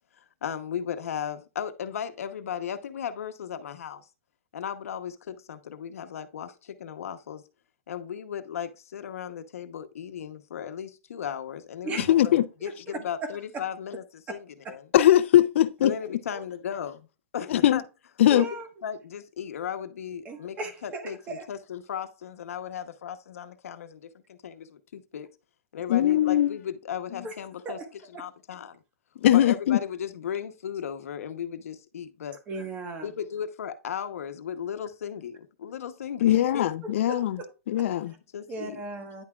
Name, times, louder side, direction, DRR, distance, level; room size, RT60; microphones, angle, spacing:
voice 1, 0.2-4.1 4.5-7.4 7.9-14.9 15.8-17.0 17.3-17.8 18.3-18.4 18.8-25.3 25.7-27.8 28.2-28.8 29.3-32.4 33.0-36.7 38.1-38.8, left 8 dB, 90° left, 1.0 m, -36 dB
voice 2, 12.1-12.4 14.9-15.9 17.5-17.8 18.2-18.5 25.9-26.6 29.2-29.8 36.2-37.4 37.7-38.1, left 12 dB, 60° left, 0.5 m, -20 dB
voice 3, 18.3-18.7 20.2-21.5 27.2-27.3 27.6-27.9 28.1-28.2 32.5-33.1 36.8-37.2 38.5-39.2, right 2 dB, 20° right, 1.3 m, -36 dB
9.9 x 5.9 x 2.4 m
hypercardioid pair, 160°, 8 cm